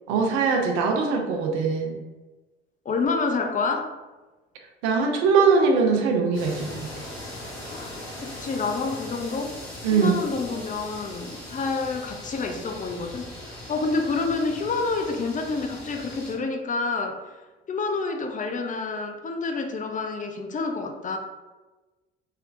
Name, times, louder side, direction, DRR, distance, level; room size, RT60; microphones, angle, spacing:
voice 1, 0.1-2.0 4.8-6.9 9.8-10.2, right 5 dB, 65° right, 2 dB, 0.6 m, -21 dB
voice 2, 2.9-3.9 7.7-7.9 8.2-9.5 9.9-17.2 17.7-21.2, left 4 dB, 25° left, 4 dB, 0.5 m, -28 dB
sound 1, 6.3-16.3, left 1 dB, 90° left, 0.9 m, -40 dB
3.2 x 2.8 x 2.5 m, 1.2 s
hypercardioid pair, 55°, 31 cm